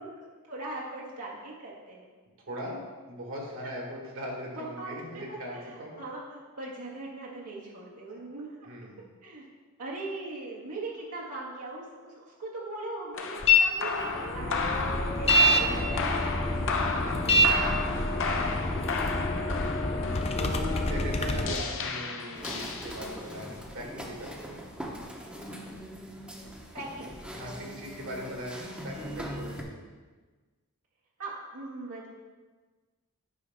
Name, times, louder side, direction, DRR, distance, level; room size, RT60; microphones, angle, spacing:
voice 1, 0.0-2.0 4.5-5.0 5.3-5.4 5.7-8.5 9.2-9.4 9.8-16.2 26.7-27.2 31.2-32.1, right 2 dB, 85° right, -5 dB, 2.0 m, -40 dB
voice 2, 2.4-2.8 3.1-6.0 8.1-8.2 8.6-9.1 16.9-20.0 20.4-24.6 27.3-29.8, equal, 60° right, -1 dB, 1.8 m, -40 dB
sound 1, 13.1-23.3, left 4 dB, 60° left, 0.7 m, -33 dB
sound 2, 13.4-13.6 14.0-21.5, left 1 dB, 25° left, 0.5 m, -26 dB
sound 3, 22.3-29.6, equal, 5° right, 0.9 m, -41 dB
9.6 x 5.5 x 3.6 m, 1.4 s
head